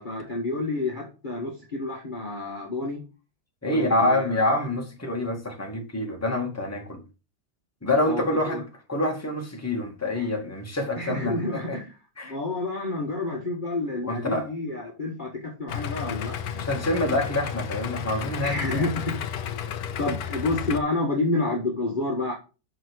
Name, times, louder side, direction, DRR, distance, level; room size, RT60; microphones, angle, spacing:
voice 1, 0.0-3.0 3.6-4.5 8.0-8.6 10.2-10.3 11.0-11.9 12.2-16.7 17.0-17.2 18.4-19.3 20.0-22.3, left 2 dB, 30° left, 1.8 m, -29 dB
voice 2, 3.6-7.0 7.8-8.6 8.9-11.8 12.2-12.4 14.0-14.5 16.6-18.9, left 1 dB, 10° left, 2.1 m, -26 dB
Idling, 15.7-20.8, left 8 dB, 65° left, 1.3 m, -32 dB
6.2 x 5.9 x 6.2 m
omnidirectional pair, 1.8 m